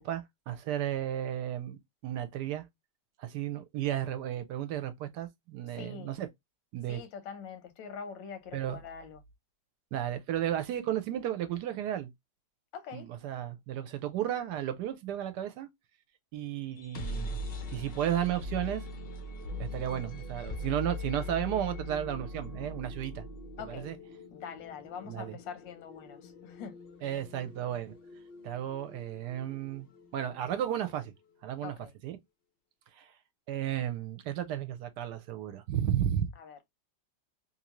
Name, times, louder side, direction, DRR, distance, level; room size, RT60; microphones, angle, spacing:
voice 1, 0.0-2.7 3.2-6.3 6.7-7.0 8.5-8.8 9.9-12.1 12.9-15.7 16.3-17.4 17.7-18.9 19.6-23.2 23.6-24.0 25.1-25.4 27.0-27.9 28.4-29.9 30.1-31.1 31.4-31.8 32.0-32.2 32.9-33.1 33.5-36.3, right 11 dB, 75° right, 1.1 m, -33 dB
voice 2, 5.8-6.2 6.9-9.2 12.7-13.1 23.6-23.9 24.3-26.8 31.6-31.9 36.4-36.6, left 7 dB, 90° left, 1.6 m, -44 dB
sound 1, 16.7-30.5, left 1 dB, 60° left, 0.6 m, -42 dB
3.4 x 2.6 x 2.9 m
omnidirectional pair, 1.9 m